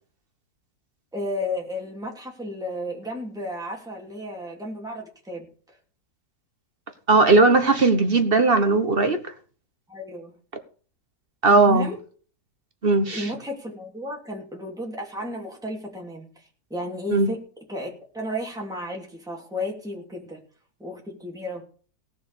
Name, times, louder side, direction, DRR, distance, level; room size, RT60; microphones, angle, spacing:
voice 1, 1.1-5.8 9.9-10.3 11.5-12.0 13.1-20.4 20.8-21.6, left 1 dB, ahead, 3.0 m, -33 dB
voice 2, 7.1-9.2 11.4-11.9 12.8-13.3 17.1-17.3, right 3 dB, 35° right, 1.3 m, -18 dB
17.5 x 6.5 x 6.9 m
omnidirectional pair, 1.8 m